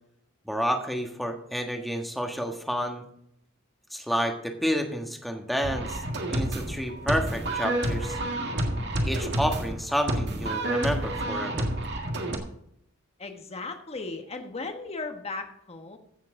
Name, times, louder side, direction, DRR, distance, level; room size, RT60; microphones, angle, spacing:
voice 1, 0.4-3.0 3.9-6.0 6.3-8.2 9.0-11.7, equal, ahead, 3 dB, 1.4 m, -30 dB
sound 1, 5.6-12.4, right 1 dB, 50° right, 1.8 m, -29 dB
voice 2, 13.2-16.0, left 3 dB, 30° left, 6 dB, 1.3 m, -36 dB
15.0 x 7.4 x 3.8 m, 0.73 s
head